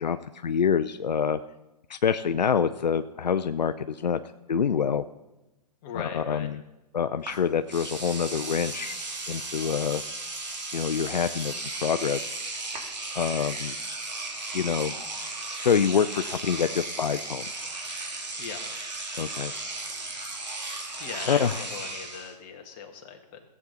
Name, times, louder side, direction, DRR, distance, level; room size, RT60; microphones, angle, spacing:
voice 1, 0.0-1.4 1.9-4.2 4.5-5.0 5.9-6.6 6.9-9.0 9.3-10.0 10.7-12.2 13.1-13.8 14.5-14.9 15.6-17.5 19.2-19.5 21.3-21.6, left 7 dB, 80° left, 9 dB, 0.5 m, -26 dB
voice 2, 5.8-6.5 18.4-18.6 21.0-23.4, left 7 dB, 35° left, 4 dB, 1.7 m, -39 dB
Engine / Domestic sounds home sounds, 7.3-7.4 7.7-22.3, right 2 dB, 85° right, 2.7 m, -35 dB
15.5 x 8.3 x 4.0 m, 0.99 s
figure-of-eight pair, 125°, 21 cm